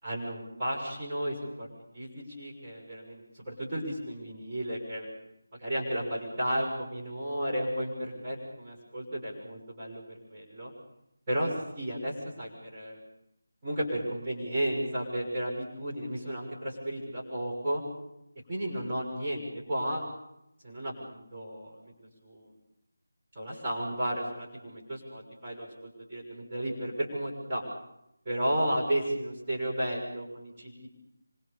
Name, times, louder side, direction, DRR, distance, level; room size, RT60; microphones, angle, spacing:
voice 1, 0.0-1.7 1.9-5.1 5.6-10.0 10.3-10.7 11.3-13.0 13.6-17.8 18.5-20.0 20.6-21.9 22.2-22.5 23.3-27.6 28.2-30.9, right 1 dB, 20° right, -5 dB, 6.3 m, -33 dB
26.0 x 24.5 x 6.9 m, 0.81 s
figure-of-eight pair, 160°, 0 cm